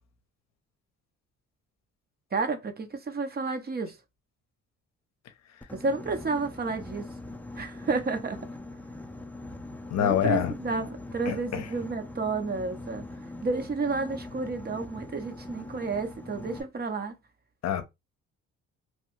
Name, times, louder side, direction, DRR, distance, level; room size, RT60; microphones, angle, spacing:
voice 1, 2.3-3.9 5.8-7.1 7.6-8.4 10.0-13.0 13.4-17.1, right 4 dB, 30° right, 0.7 m, -31 dB
Boat Water vehicle, 5.6-16.6, left 2 dB, 5° left, 0.5 m, -42 dB
voice 2, 9.9-10.5 11.3-11.7 17.6-17.8, left 9 dB, 60° left, 0.7 m, -26 dB
3.1 x 2.2 x 3.1 m
cardioid pair, 90°, 30 cm